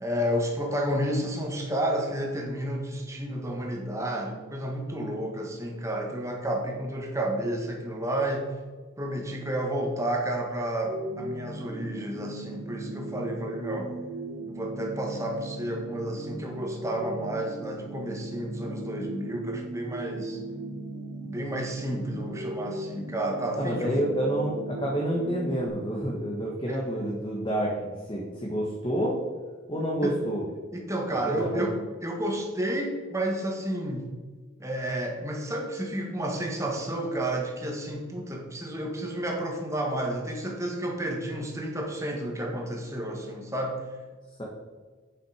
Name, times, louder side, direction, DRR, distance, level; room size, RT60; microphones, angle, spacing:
voice 1, 0.0-8.5 9.0-13.9 14.5-20.4 21.2-24.0 26.7-26.8 30.0-30.1 30.7-34.1 34.6-43.8, right 1 dB, 15° right, 0 dB, 1.6 m, -31 dB
sound 1, 10.8-25.7, right 2 dB, 55° right, 1.3 m, -38 dB
voice 2, 23.6-29.2 29.7-30.5 31.1-31.6 44.4-44.5, right 1 dB, 25° left, -3 dB, 1.5 m, -29 dB
8.8 x 7.5 x 5.0 m, 1.4 s
head